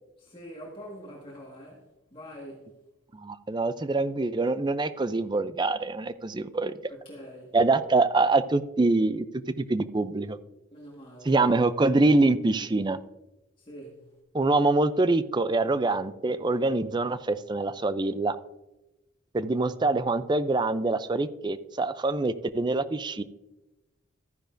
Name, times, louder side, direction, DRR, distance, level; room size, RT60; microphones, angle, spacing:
voice 1, 0.2-2.7 6.9-7.6 10.7-11.3 13.6-14.1, equal, 25° left, 1.7 m, -45 dB
voice 2, 3.1-6.7 7.5-9.3 9.6-10.4 11.3-13.0 14.3-18.4 19.3-23.2, right 2 dB, 20° right, 0.4 m, -25 dB
13.5 x 10.0 x 2.6 m
head